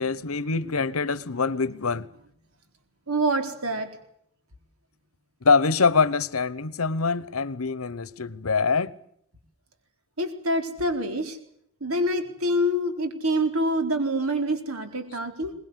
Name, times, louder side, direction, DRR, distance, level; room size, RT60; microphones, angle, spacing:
voice 1, 0.0-2.1 5.4-8.9, left 4 dB, 80° left, 1.0 m, -24 dB
voice 2, 3.1-3.9 10.2-11.4 11.8-15.5, equal, 85° right, 4.0 m, -26 dB
22.5 x 20.5 x 8.2 m
head